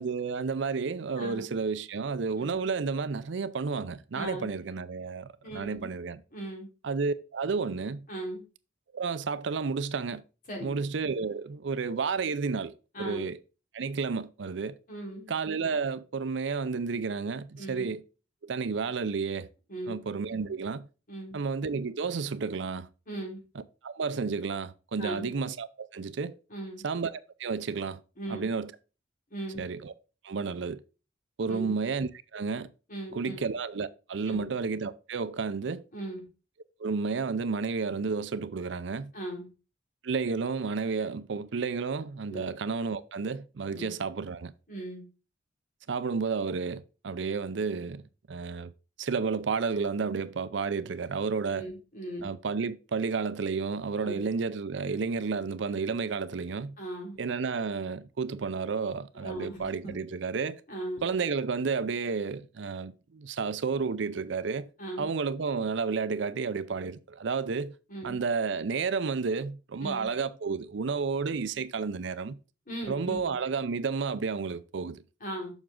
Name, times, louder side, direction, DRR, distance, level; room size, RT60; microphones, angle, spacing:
voice 1, 0.0-6.2 6.8-8.1 8.9-10.2 10.6-12.7 13.0-13.4 13.7-14.8 15.3-18.0 18.4-19.5 19.9-20.9 21.3-22.9 23.8-26.4 26.8-28.0 28.3-28.7 29.6-29.9 30.2-30.8 31.4-32.7 33.1-35.8 36.8-39.1 40.0-44.5 45.9-48.0 48.3-48.7 49.0-51.6 52.2-56.8 57.2-60.6 61.0-64.7 65.0-67.7 68.0-72.4 72.9-75.0, right 5 dB, 70° right, 0.5 m, -31 dB
voice 2, 1.2-1.5 2.4-2.6 4.1-4.5 5.4-5.9 6.3-6.7 8.1-8.4 10.5-10.8 12.9-13.2 14.9-15.3 17.6-17.9 19.7-20.0 21.1-21.4 23.1-23.4 25.0-25.3 26.5-26.8 28.2-28.5 29.3-29.6 31.5-31.8 32.9-33.4 34.3-34.5 35.9-36.2 39.1-39.5 42.3-42.4 43.7-43.9 44.7-45.0 51.5-52.3 54.0-54.3 56.8-57.2 59.2-60.0 60.7-61.1 64.8-65.1 67.9-68.2 69.8-70.1 72.7-73.3 75.2-75.5, right 1 dB, 45° left, 3.6 m, -38 dB
7.1 x 6.1 x 3.7 m
head